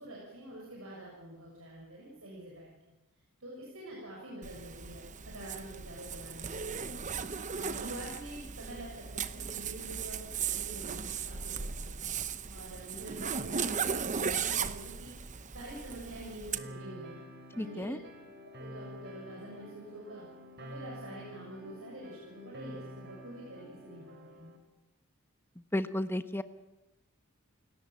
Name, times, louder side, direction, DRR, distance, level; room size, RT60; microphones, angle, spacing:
voice 1, 0.0-2.7 3.4-7.0 7.5-12.1 12.5-15.1 15.5-17.2 17.5-18.0 18.6-20.3 20.6-24.6, right 1 dB, 75° right, -3 dB, 6.9 m, -46 dB
Zipper (clothing), 4.4-16.6, right 6 dB, 35° right, 0.9 m, -37 dB
sound 1, 16.6-24.6, left 1 dB, 50° right, 3.7 m, -49 dB
voice 2, 17.6-18.0 25.7-26.4, left 1 dB, 10° left, 11 dB, 1.0 m, -32 dB
28.5 x 18.5 x 7.5 m, 0.95 s
head